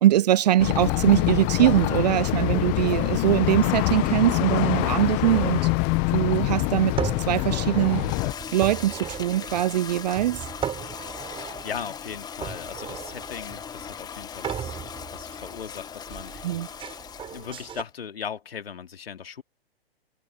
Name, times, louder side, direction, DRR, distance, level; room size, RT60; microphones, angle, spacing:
voice 1, 0.0-5.6 6.1-7.0 7.3-8.0 8.5-10.4 16.4-16.7, right 13 dB, 40° right, 0.5 m, -22 dB
sound 1, 0.6-8.3, left 28 dB, 30° left, 1.1 m, -25 dB
sound 2, 3.9-17.8, right 9 dB, 15° right, 7.7 m, -38 dB
Toilet flush, 6.8-17.9, left 8 dB, 10° left, 1.6 m, -40 dB
voice 2, 11.3-16.6 17.3-19.4, left 7 dB, 70° left, 2.8 m, -38 dB
hypercardioid pair, 130°, 31 cm